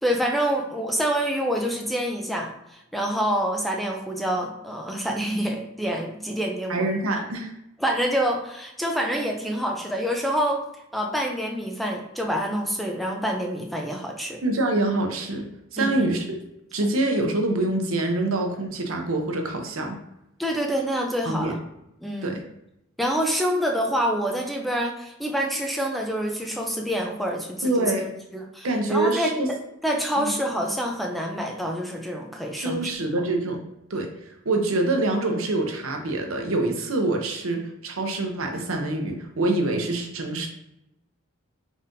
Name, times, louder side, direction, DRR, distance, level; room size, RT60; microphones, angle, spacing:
voice 1, 0.0-7.0 7.8-10.6 10.9-14.4 15.8-16.1 20.4-21.6 22.0-22.4 23.0-27.9 28.3-29.6 29.8-32.9 33.2-33.3, equal, ahead, 1 dB, 0.4 m, -27 dB
voice 2, 6.7-7.5 14.4-16.4 16.7-20.0 21.3-21.6 22.2-22.4 27.6-28.1 28.6-29.5 30.2-30.3 32.6-33.6 33.9-34.1 34.4-40.5, right 2 dB, 70° right, 3 dB, 0.7 m, -25 dB
4.0 x 3.5 x 2.6 m, 0.84 s
head